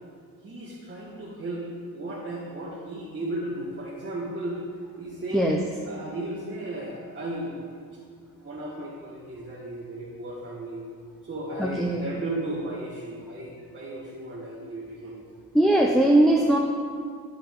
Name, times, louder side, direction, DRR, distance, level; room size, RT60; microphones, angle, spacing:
voice 1, 0.4-1.6 1.9-4.6 5.0-5.5 5.9-7.7 8.4-10.8 11.2-15.2, right 1 dB, 30° right, -6 dB, 1.5 m, -35 dB
voice 2, 11.6-12.1 15.5-16.6, right 1 dB, ahead, 0 dB, 0.6 m, -20 dB
12.0 x 5.7 x 3.7 m, 2.2 s
cardioid pair, 110°, 37 cm